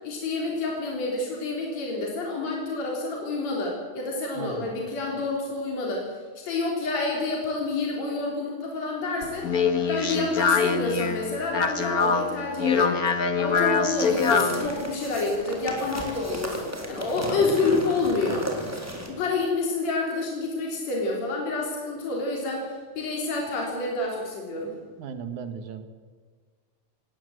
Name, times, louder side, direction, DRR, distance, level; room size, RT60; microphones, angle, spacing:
voice 1, 0.0-6.2 6.4-9.5 9.8-13.0 13.4-18.5 19.0-24.7, left 3 dB, 65° left, -1 dB, 4.8 m, -28 dB
voice 2, 4.3-4.7 17.1-17.6 25.0-25.8, right 6 dB, 90° right, 9 dB, 3.1 m, -37 dB
Speech, 9.2-14.7, left 5 dB, 35° left, 1.7 m, -24 dB
sound 1, 14.0-19.1, equal, 5° right, 3.7 m, -35 dB
19.0 x 18.0 x 8.0 m, 1.5 s
omnidirectional pair, 3.3 m